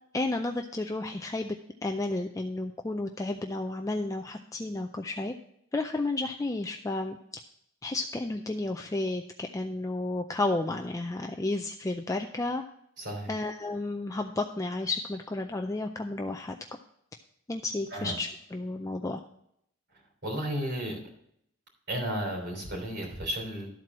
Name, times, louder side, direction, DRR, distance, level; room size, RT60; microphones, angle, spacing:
voice 1, 0.1-1.5 1.8-5.3 5.7-7.2 7.8-12.6 13.3-16.6 17.5-19.2, left 2 dB, 15° left, 4 dB, 0.4 m, -32 dB
voice 2, 13.0-13.3 17.9-18.1 20.2-21.0 21.9-23.7, equal, 60° right, -1 dB, 3.4 m, -33 dB
12.5 x 4.4 x 6.1 m, 0.72 s
head